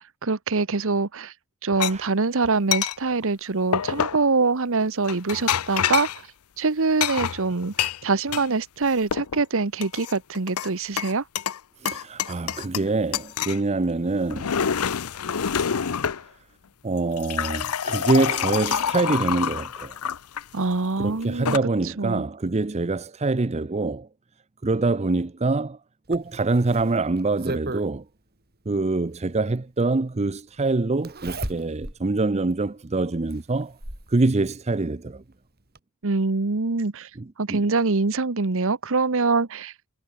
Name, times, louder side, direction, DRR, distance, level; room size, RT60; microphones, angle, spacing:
voice 1, 0.2-1.3 1.6-6.1 6.6-11.2 20.5-21.6 22.0-22.2 36.0-37.1 37.4-39.7, right 3 dB, 60° right, 1.0 m, -24 dB
sound 1, 1.8-1.9 2.7-3.0 3.7-4.2 5.1-6.2 7.0-8.5 8.8-9.4 9.8-10.7 11.0-11.6 11.9-12.9 13.1-13.6 14.1-16.2 17.0-20.4 21.2-21.6, left 8 dB, 80° left, 0.7 m, -26 dB
voice 2, 11.8-14.5 16.8-20.0 21.0-24.1 24.6-25.8 26.1-28.0 28.7-33.8 34.1-35.2 37.2-37.6, right 3 dB, 30° right, 0.6 m, -25 dB
Zipper (clothing), 26.1-27.9 29.3-29.4 31.0-32.0 32.5-32.6 33.3-34.1 35.3-35.4 35.8-35.9, right 2 dB, 45° right, 6.2 m, -34 dB
head